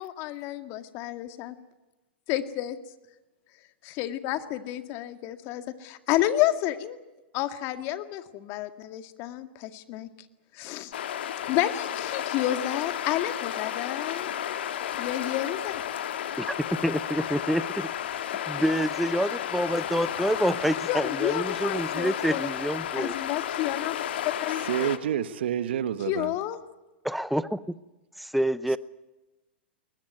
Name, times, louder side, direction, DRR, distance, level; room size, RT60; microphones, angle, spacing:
voice 1, 0.0-1.6 2.3-2.8 3.8-7.0 7.3-10.1 10.5-10.9 11.5-14.3 15.0-15.7 20.9-22.5 22.9-24.0 24.2-24.9 26.1-26.6, left 13 dB, 45° left, 2.0 m, -30 dB
sound 1, 10.9-25.0, left 10 dB, 70° left, 1.9 m, -32 dB
voice 2, 16.4-17.9 18.5-23.1 27.0-27.8 28.2-28.8, equal, ahead, 0.7 m, -27 dB
voice 3, 24.6-26.3, right 10 dB, 70° right, 1.4 m, -28 dB
21.5 x 19.0 x 9.4 m
hypercardioid pair, 115°, 6 cm